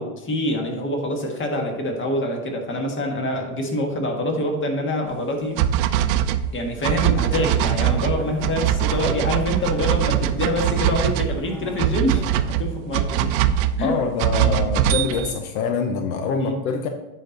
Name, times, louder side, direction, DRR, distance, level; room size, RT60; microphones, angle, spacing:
voice 1, 0.0-5.6 6.5-12.2 12.6-13.3 13.8-14.0 14.4-14.7 16.4-16.5, left 1 dB, 30° left, 2 dB, 1.7 m, -25 dB
sound 1, 5.6-15.4, right 11 dB, 65° right, 0.6 m, -22 dB
sound 2, 7.3-12.4, right 1 dB, 5° left, 0.7 m, -37 dB
voice 2, 13.8-16.9, left 5 dB, 75° left, 6 dB, 0.9 m, -25 dB
10.0 x 4.5 x 4.0 m, 1.0 s
supercardioid pair, 105°, 42 cm